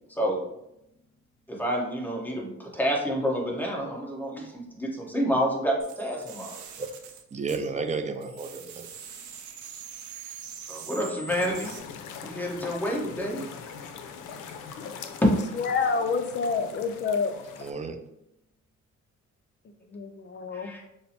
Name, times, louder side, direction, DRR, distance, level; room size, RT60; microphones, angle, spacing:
voice 1, 1.5-6.6 10.7-11.7 12.2-13.4 20.5-20.8, equal, 5° left, -2 dB, 1.0 m, -29 dB
sound 1, 5.8-11.8, right 6 dB, 75° right, 0.6 m, -43 dB
voice 2, 7.3-8.9 17.6-18.0, right 4 dB, 25° right, 7 dB, 0.4 m, -32 dB
sound 2, 11.3-17.7, left 6 dB, 85° left, 0.5 m, -42 dB
voice 3, 15.6-17.3 19.9-20.8, left 5 dB, 40° left, 8 dB, 0.5 m, -28 dB
5.6 x 2.0 x 2.8 m, 0.84 s
cardioid pair, 90°, 30 cm